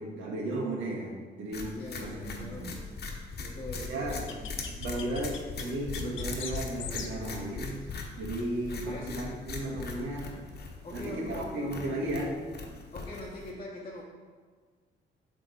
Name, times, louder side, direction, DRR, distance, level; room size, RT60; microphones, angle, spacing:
voice 1, 0.0-2.8 3.9-4.3 4.8-7.9 8.2-10.4 10.9-12.3, right 1 dB, 80° right, -2 dB, 1.6 m, -35 dB
sound 1, 1.5-13.5, left 4 dB, 55° left, 1.0 m, -40 dB
voice 2, 1.7-2.9 3.4-5.0 8.7-9.2 10.8-12.2 12.9-14.0, left 2 dB, 30° left, -5 dB, 0.9 m, -43 dB
sound 2, 4.0-8.6, left 8 dB, 75° left, 0.6 m, -42 dB
7.7 x 3.5 x 4.3 m, 1.5 s
cardioid pair, 90°, 20 cm